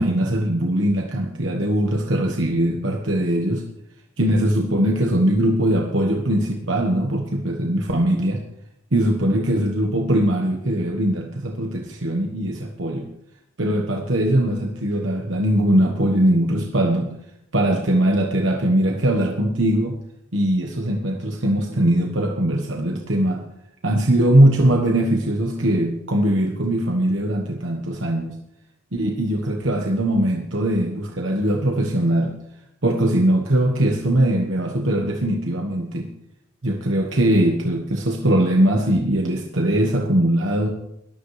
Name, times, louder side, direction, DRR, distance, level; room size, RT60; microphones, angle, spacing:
voice 1, 0.0-3.6 4.2-8.4 8.9-13.1 13.6-17.1 17.5-20.0 20.3-23.4 23.8-28.4 28.9-32.3 32.8-36.1 36.6-40.7, right 1 dB, 65° right, 1 dB, 1.3 m, -21 dB
19.5 x 12.5 x 3.3 m, 0.79 s
head